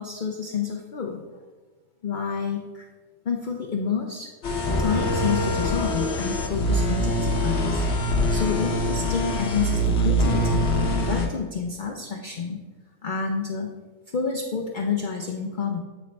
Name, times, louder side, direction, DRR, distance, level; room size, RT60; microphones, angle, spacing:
voice 1, 0.0-1.4 2.0-2.9 3.3-4.3 4.8-7.8 8.3-10.7 11.1-12.6 13.0-13.7 14.1-15.8, left 6 dB, 85° left, 1 dB, 0.4 m, -29 dB
sound 1, 4.4-11.3, equal, 55° left, 1.0 m, -24 dB
8.6 x 4.0 x 3.2 m, 1.3 s
omnidirectional pair, 1.5 m